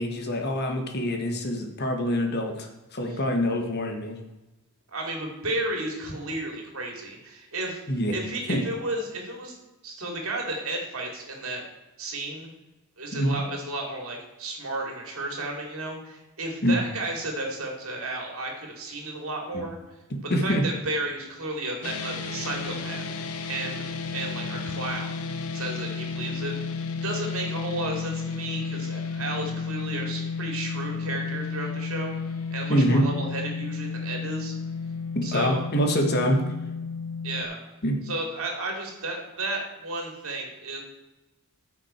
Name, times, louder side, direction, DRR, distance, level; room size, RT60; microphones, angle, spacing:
voice 1, 0.0-4.2 7.9-8.1 8.5-8.6 13.1-13.4 16.6-16.8 19.5-19.6 20.3-20.6 32.7-33.0 35.1-36.4 37.8-38.0, equal, 45° left, 3 dB, 1.5 m, -25 dB
voice 2, 4.9-7.8 8.1-9.6 9.8-11.6 12.0-12.5 13.0-19.8 20.2-23.2 23.5-23.9 24.1-25.1 25.5-26.8 27.0-32.1 32.5-34.5 35.2-35.6 37.2-37.6 38.1-40.8, right 2 dB, 65° right, 1 dB, 2.7 m, -33 dB
sound 1, 21.8-37.4, left 5 dB, 75° left, 0.9 m, -32 dB
14.0 x 6.1 x 4.4 m, 1.0 s
head